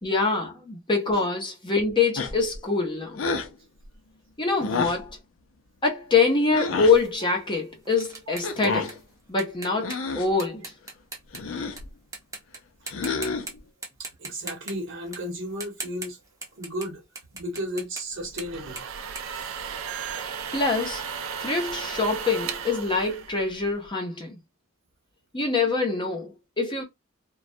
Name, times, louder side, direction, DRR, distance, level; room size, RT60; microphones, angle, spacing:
voice 1, 0.0-3.2 4.4-5.1 5.8-9.0 9.3-10.6 20.5-21.0 21.4-24.4 25.3-26.8, left 4 dB, 25° left, 0.7 m, -25 dB
sound 1, 2.1-2.6 3.1-3.5 4.6-5.1 6.5-7.0 8.4-9.0 9.8-10.3 11.3-11.9 12.9-13.6, left 4 dB, 80° left, 0.5 m, -29 dB
sound 2, 6.9-11.8 12.1-12.6 12.9-13.5 13.8-20.2, right 3 dB, 15° right, 0.7 m, -40 dB
voice 2, 14.2-16.2 16.6-17.0 17.3-18.8, equal, 65° right, 0.9 m, -33 dB
sound 3, 18.2-23.9, right 7 dB, 85° right, 0.4 m, -35 dB
2.3 x 2.1 x 2.6 m
head